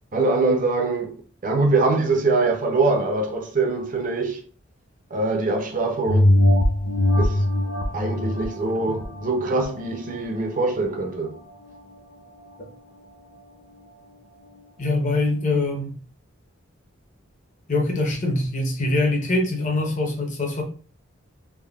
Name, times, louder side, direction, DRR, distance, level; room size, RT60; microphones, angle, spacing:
voice 1, 0.1-4.4 5.1-6.4 7.2-7.5 7.9-11.4, right 3 dB, 40° right, 0.5 m, -23 dB
sound 1, 6.1-11.0 11.5-11.6, left 1 dB, 80° left, 0.4 m, -22 dB
voice 2, 14.8-15.9 17.7-20.6, left 2 dB, 40° left, 0.6 m, -23 dB
3.4 x 2.1 x 2.3 m
head